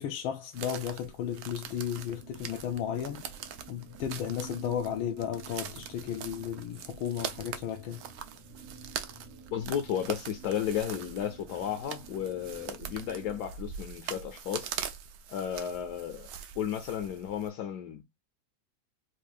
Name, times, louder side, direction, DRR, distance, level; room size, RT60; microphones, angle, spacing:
voice 1, 0.0-3.2 3.7-8.0, left 9 dB, 85° left, 1.4 m, -34 dB
sound 1, 0.5-17.5, right 8 dB, 75° right, 0.8 m, -42 dB
sound 2, 1.6-13.4, right 5 dB, 35° right, 0.6 m, -52 dB
voice 2, 9.5-14.7 15.3-16.3 16.6-18.0, left 9 dB, 70° left, 1.0 m, -33 dB
4.4 x 2.7 x 2.3 m
omnidirectional pair, 2.2 m